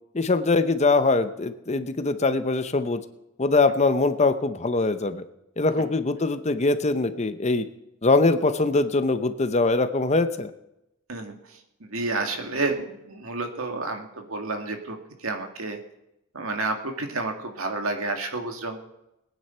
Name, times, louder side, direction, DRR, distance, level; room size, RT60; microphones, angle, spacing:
voice 1, 0.1-3.0 3.4-5.2 5.6-7.6 8.0-10.5, left 3 dB, 30° left, 10 dB, 0.7 m, -22 dB
voice 2, 11.1-15.8 16.3-18.8, right 3 dB, 75° right, 4 dB, 2.1 m, -30 dB
21.0 x 9.6 x 4.4 m, 0.87 s
head